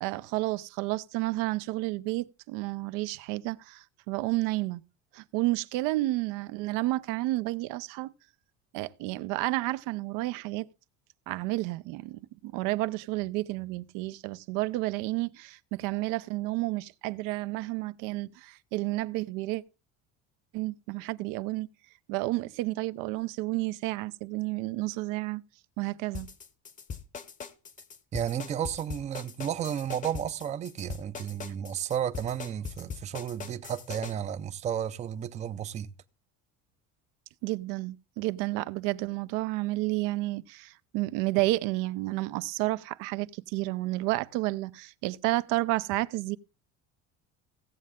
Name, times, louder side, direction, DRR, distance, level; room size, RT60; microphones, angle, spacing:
voice 1, 0.0-4.8 5.1-8.1 8.7-10.7 11.3-19.6 20.5-21.7 22.1-25.4 25.8-26.3 37.4-46.4, right 19 dB, 80° right, 0.6 m, -31 dB
sound 1, 26.1-34.1, left 6 dB, 25° left, 0.8 m, -41 dB
voice 2, 28.1-35.9, right 9 dB, 20° right, 0.5 m, -33 dB
16.5 x 7.4 x 3.6 m
cardioid pair, 150°, 32 cm